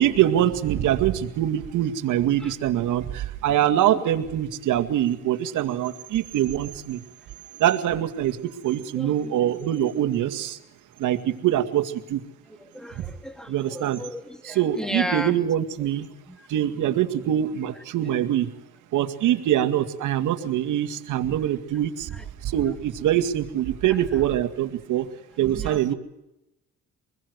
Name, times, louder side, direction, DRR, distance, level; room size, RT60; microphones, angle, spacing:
voice 1, 0.0-7.0 7.6-10.6 11.0-12.2 13.0-13.1 13.5-14.0 14.4-16.1 16.5-18.5 18.9-22.2 22.4-25.1 25.4-25.9, right 11 dB, 85° right, 8 dB, 2.2 m, -24 dB
voice 2, 8.9-9.9 12.5-15.3 16.3-16.5 18.0-18.2 19.9-20.0 20.4-20.5 22.1-22.3 23.8-24.2 25.4-25.9, equal, ahead, 8 dB, 3.1 m, -36 dB
26.0 x 21.0 x 8.1 m, 0.90 s
cardioid pair, 90°, 30 cm